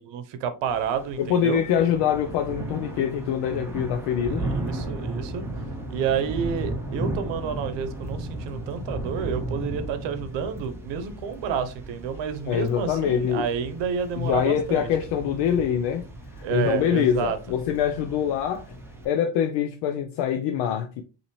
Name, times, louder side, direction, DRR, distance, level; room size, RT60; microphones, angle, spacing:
voice 1, 0.0-1.6 4.4-5.4 5.9-14.9 16.4-17.4, right 7 dB, 70° right, 0.9 m, -29 dB
Thunder / Rain, 0.7-19.1, right 1 dB, 5° right, 0.5 m, -35 dB
voice 2, 1.2-4.4 12.5-13.5 14.2-16.0 16.4-18.8 19.0-21.0, left 9 dB, 65° left, 0.6 m, -24 dB
5.6 x 2.8 x 3.0 m
cardioid pair, 170°, 45 cm